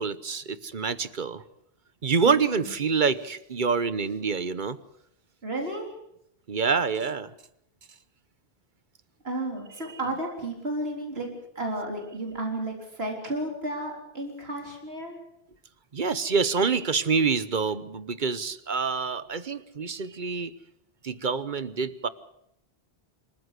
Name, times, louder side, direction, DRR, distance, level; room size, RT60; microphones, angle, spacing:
voice 1, 0.0-1.4 2.0-4.8 6.5-7.3 15.9-20.5 21.0-22.1, right 5 dB, 50° right, 15 dB, 1.1 m, -26 dB
voice 2, 2.2-2.7 5.4-5.9 9.2-11.3 11.6-15.2, right 1 dB, 75° right, 1 dB, 3.9 m, -33 dB
26.5 x 14.5 x 8.2 m, 0.77 s
omnidirectional pair, 1.1 m